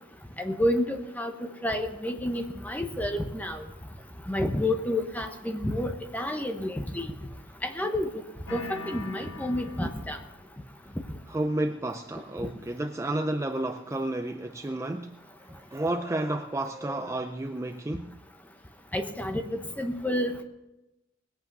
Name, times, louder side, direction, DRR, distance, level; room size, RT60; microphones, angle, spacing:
voice 1, 0.4-3.6 4.3-7.1 7.6-8.1 8.5-10.2 18.9-19.4 19.8-20.4, left 1 dB, 10° left, 6 dB, 1.1 m, -29 dB
sound 1, 8.5-10.4, left 3 dB, 65° left, 1.7 m, -42 dB
voice 2, 11.3-15.2 15.5-18.2, right 1 dB, 15° right, 7 dB, 0.4 m, -31 dB
20.5 x 8.4 x 5.4 m, 0.97 s
head